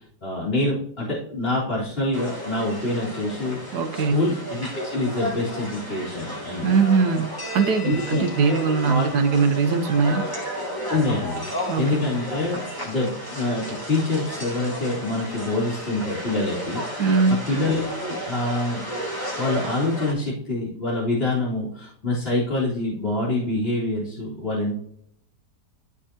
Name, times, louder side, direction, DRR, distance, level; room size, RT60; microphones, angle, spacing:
voice 1, 0.2-6.7 7.8-8.6 8.8-9.1 10.9-17.1 17.5-18.8 19.4-24.8, left 2 dB, 35° left, -10 dB, 3.1 m, -26 dB
sound 1, 2.1-20.1, equal, 10° left, 2.1 m, -33 dB
voice 2, 3.7-4.3 6.6-10.3 11.7-12.0 17.0-17.4, right 5 dB, 70° right, 7 dB, 1.4 m, -21 dB
13.5 x 5.0 x 2.9 m, 0.68 s
omnidirectional pair, 1.8 m